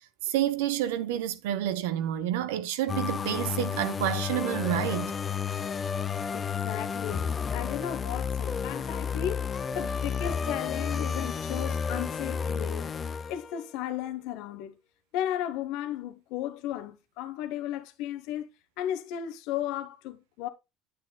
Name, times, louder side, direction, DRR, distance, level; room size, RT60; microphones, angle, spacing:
voice 1, 0.2-5.1, right 12 dB, 80° right, 0.9 m, -29 dB
sound 1, 2.9-13.7, left 6 dB, 35° left, 0.7 m, -31 dB
voice 2, 6.3-13.0 13.3-14.8 15.1-18.5 18.8-20.5, left 11 dB, 70° left, 0.9 m, -35 dB
9.2 x 8.1 x 2.3 m
hypercardioid pair, 80°, 0 cm